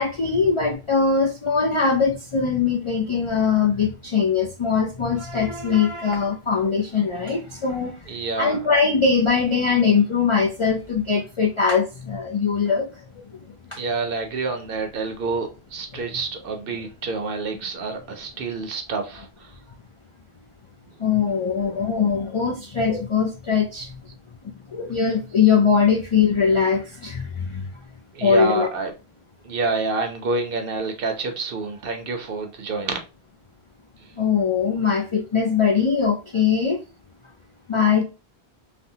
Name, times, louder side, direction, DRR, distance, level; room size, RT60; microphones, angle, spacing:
voice 1, 0.0-8.0 8.4-12.9 13.7-13.8 15.9-16.0 21.0-24.0 24.4-27.6 28.2-28.7 34.2-36.8 37.7-38.0, left 5 dB, 55° left, 0.3 m, -21 dB
voice 2, 8.1-8.6 13.8-19.5 28.1-28.9 29.4-33.0, right 3 dB, 65° right, 0.8 m, -28 dB
3.3 x 2.0 x 2.7 m
omnidirectional pair, 1.0 m